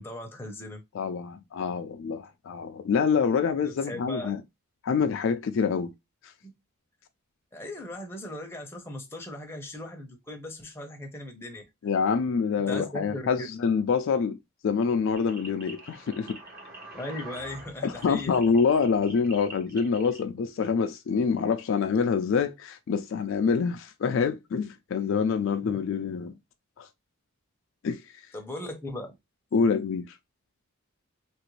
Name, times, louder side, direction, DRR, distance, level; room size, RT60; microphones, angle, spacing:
voice 1, 0.0-0.8 3.6-4.3 6.4-6.5 7.5-11.6 12.7-13.5 16.9-18.3 25.7-25.8 28.3-29.1, left 1 dB, 10° left, 0.6 m, -38 dB
voice 2, 0.9-4.4 4.8-5.9 11.8-14.4 14.6-16.4 17.8-26.3 26.8-26.9 27.8-28.0 29.5-30.1, left 5 dB, 60° left, 0.3 m, -26 dB
sound 1, 15.1-20.2, right 2 dB, 45° right, 1.2 m, -46 dB
3.0 x 2.5 x 3.0 m
head